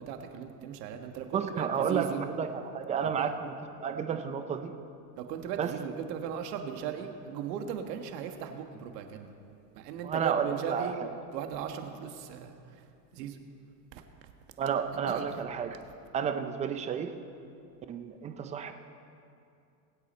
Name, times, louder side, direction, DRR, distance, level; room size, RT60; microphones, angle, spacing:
voice 1, 0.0-2.3 3.0-3.3 5.2-9.3 9.7-12.8 13.1-13.4 13.9-14.0 15.1-15.3, right 8 dB, 70° right, 6 dB, 1.6 m, -38 dB
voice 2, 1.3-4.7 5.6-5.7 10.0-11.1 14.6-15.8 16.1-17.1 17.9-18.7, right 7 dB, 15° right, 8 dB, 0.4 m, -31 dB
22.0 x 8.4 x 4.3 m, 2.6 s
supercardioid pair, 140°, 50 cm